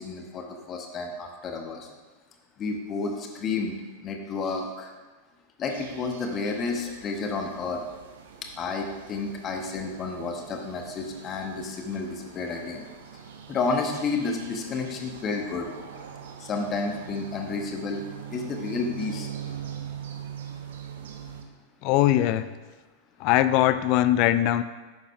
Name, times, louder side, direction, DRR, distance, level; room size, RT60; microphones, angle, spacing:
voice 1, 0.0-1.9 2.6-3.7 4.0-4.9 5.6-7.8 8.6-12.8 13.5-15.7 16.4-18.0 18.3-19.3, left 4 dB, 30° left, 3 dB, 1.1 m, -31 dB
sound 1, 5.7-21.4, right 8 dB, 60° right, 0.7 m, -42 dB
voice 2, 21.8-22.5 23.2-24.6, left 13 dB, 45° left, 13 dB, 0.3 m, -21 dB
11.0 x 8.0 x 2.3 m, 1.3 s
figure-of-eight pair, 90°, 0 cm